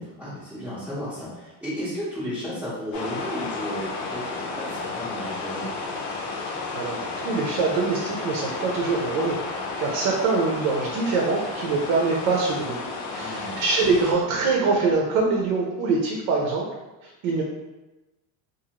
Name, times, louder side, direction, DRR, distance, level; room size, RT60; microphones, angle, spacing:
voice 1, 0.0-5.7 13.1-13.6, equal, 5° right, -12 dB, 0.7 m, -34 dB
sound 1, 2.9-14.1, left 3 dB, 75° left, 0.8 m, -32 dB
voice 2, 6.7-9.4 9.8-12.8 13.1-16.6 17.0-17.4, right 4 dB, 70° right, -1 dB, 0.7 m, -24 dB
2.6 x 2.6 x 2.8 m, 1.1 s
cardioid pair, 135°, 50 cm